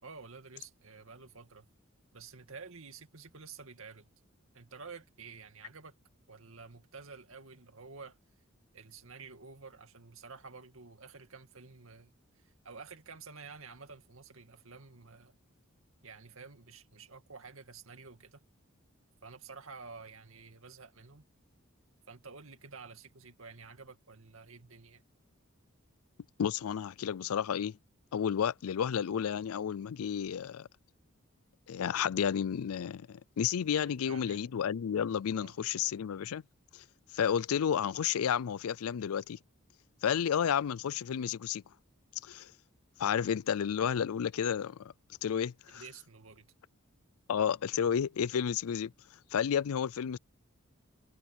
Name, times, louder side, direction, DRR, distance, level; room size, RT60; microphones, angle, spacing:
voice 1, 0.0-1.7 2.1-4.1 4.5-5.9 6.3-8.2 8.7-15.3 16.0-18.4 19.2-21.2 22.1-25.0 33.8-34.5 35.3-35.6 45.7-46.5, right 4 dB, 75° right, 2.2 m, -50 dB
voice 2, 26.4-27.8 28.1-30.7 31.7-36.4 36.7-36.8 37.1-39.4 40.0-41.6 42.2-42.5 43.0-44.9 45.2-45.8 47.3-48.9 49.3-50.2, left 8 dB, 90° left, 0.4 m, -31 dB
head